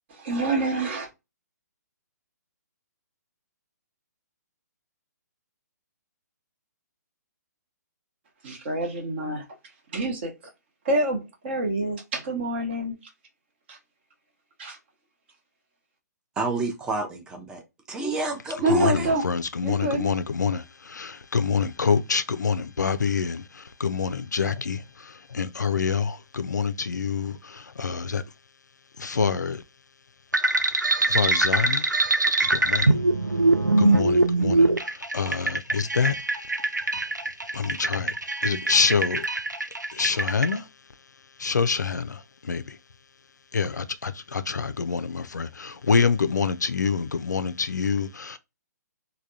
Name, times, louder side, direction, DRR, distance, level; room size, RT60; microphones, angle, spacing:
voice 1, 0.1-1.1 8.4-9.4 9.9-10.3 10.8-11.2 11.4-12.9 13.7-13.8 14.6-14.8 18.6-19.2 19.6-20.1, right 2 dB, 40° right, 0.9 m, -26 dB
voice 2, 16.4-17.6 17.9-19.1, right 3 dB, 10° right, 0.5 m, -29 dB
voice 3, 18.7-28.2 29.0-29.6 31.1-32.0 32.5-33.0 33.8-36.2 37.5-38.1 38.4-39.2 39.9-40.7 41.4-42.8 43.5-48.4, left 5 dB, 75° left, 0.4 m, -26 dB
sound 1, 30.3-40.5, right 2 dB, 85° right, 0.4 m, -23 dB
3.3 x 2.2 x 2.6 m
figure-of-eight pair, 130°, 10 cm